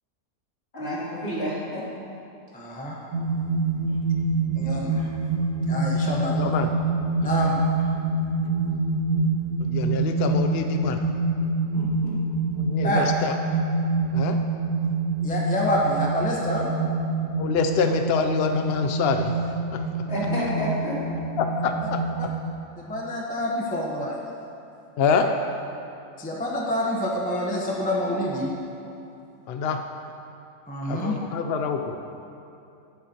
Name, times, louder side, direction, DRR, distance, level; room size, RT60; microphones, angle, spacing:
voice 1, 0.7-1.8 11.7-12.1 20.1-21.0, equal, 45° left, -9 dB, 3.2 m, -29 dB
voice 2, 2.5-3.0 4.5-5.1 5.7-6.4 7.2-7.8 12.8-13.1 15.2-16.6 22.8-24.1 25.2-25.3 26.2-28.5 30.7-31.2, left 1 dB, 5° left, -3 dB, 0.8 m, -27 dB
sound 1, 3.1-22.5, right 3 dB, 85° right, 1.6 m, -26 dB
voice 3, 6.4-6.7 7.2-7.3 9.6-11.0 12.6-13.3 14.1-14.4 17.4-19.3 19.7-19.8 21.4-22.3 25.0-25.3 29.5-29.8 30.9-32.0, left 5 dB, 75° left, 6 dB, 0.5 m, -26 dB
18.0 x 8.0 x 2.9 m, 2.8 s
omnidirectional pair, 1.6 m